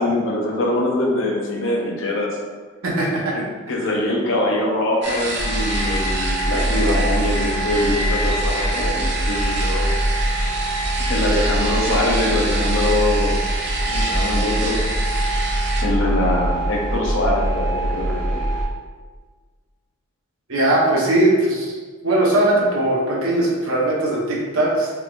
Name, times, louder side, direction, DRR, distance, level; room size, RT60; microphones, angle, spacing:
voice 1, 0.0-2.4 3.3-9.9 11.1-13.4 13.9-14.8 15.8-18.5, left 1 dB, 65° left, -1 dB, 0.6 m, -23 dB
voice 2, 2.8-3.4 20.5-21.7 22.0-24.9, right 1 dB, 80° right, -4 dB, 0.9 m, -19 dB
sound 1, 5.0-15.8, right 1 dB, 50° right, 0.5 m, -27 dB
sound 2, 5.4-18.6, right 1 dB, 20° left, 1.0 m, -23 dB
3.4 x 3.3 x 2.4 m, 1.5 s
head